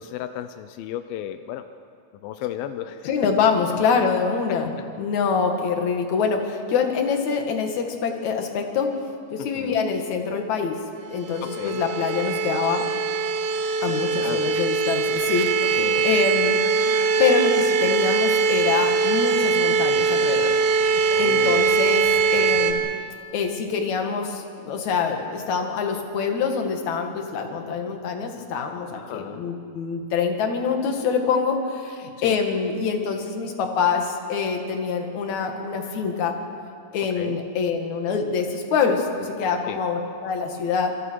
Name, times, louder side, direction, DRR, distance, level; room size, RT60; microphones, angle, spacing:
voice 1, 0.0-1.7 2.1-3.1 4.5-4.6 9.4-9.8 11.4-11.8 14.2-14.6 15.6-16.2 21.1-21.9 22.3-22.5 29.0-29.4 32.2-32.4 37.2-37.4 39.7-39.8, left 11 dB, 85° left, 10 dB, 2.1 m, -34 dB
voice 2, 3.0-8.9 9.3-10.8 11.1-12.8 13.8-20.5 21.2-22.9 23.3-36.4 36.9-40.9, left 5 dB, 50° left, 4 dB, 2.6 m, -25 dB
sound 1, 11.1-22.7, right 5 dB, 65° right, 2.9 m, -22 dB
26.5 x 26.5 x 4.7 m, 2.5 s
omnidirectional pair, 5.1 m